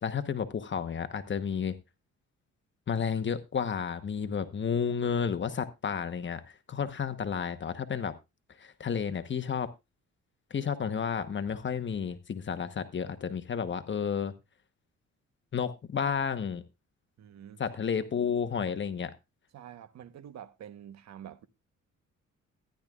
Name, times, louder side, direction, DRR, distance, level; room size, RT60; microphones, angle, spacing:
voice 1, 0.0-1.8 2.9-8.1 8.6-9.7 10.5-14.3 15.5-16.6 17.6-19.1, left 7 dB, 40° left, 1.1 m, -31 dB
voice 2, 17.2-17.6 19.5-21.5, right 10 dB, 60° right, 1.1 m, -47 dB
14.5 x 10.5 x 2.4 m
cardioid pair, 90°, 30 cm